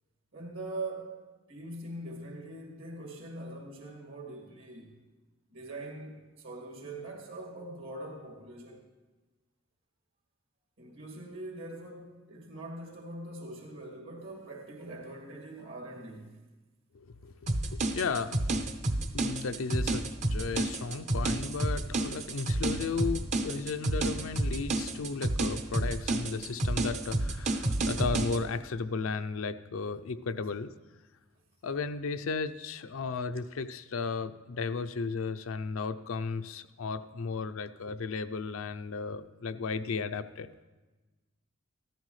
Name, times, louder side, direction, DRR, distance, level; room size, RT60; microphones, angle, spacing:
voice 1, 0.3-5.0 5.5-8.8 10.8-16.4 25.5-25.6 26.4-26.5, right 2 dB, 65° right, 2.2 m, -42 dB
voice 2, 16.9-18.5 19.1-30.7 31.6-40.5, left 4 dB, 75° left, 0.5 m, -35 dB
sound 1, 17.5-28.4, right 2 dB, 35° right, 0.6 m, -30 dB
15.0 x 13.5 x 3.2 m
head